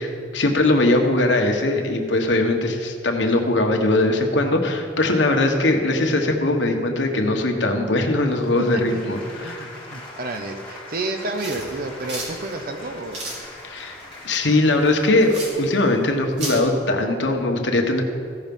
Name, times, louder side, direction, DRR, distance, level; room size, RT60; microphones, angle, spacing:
voice 1, 0.0-9.7 13.6-14.0 14.2-18.0, left 2 dB, 90° left, 3 dB, 1.2 m, -20 dB
sound 1, 8.1-16.1, left 2 dB, 5° left, 2.3 m, -42 dB
voice 2, 8.6-9.1 9.4-13.4, right 2 dB, 55° right, 5 dB, 0.7 m, -30 dB
sound 2, 11.4-16.6, right 1 dB, 70° right, 3.1 m, -35 dB
15.5 x 5.8 x 5.4 m, 2.2 s
head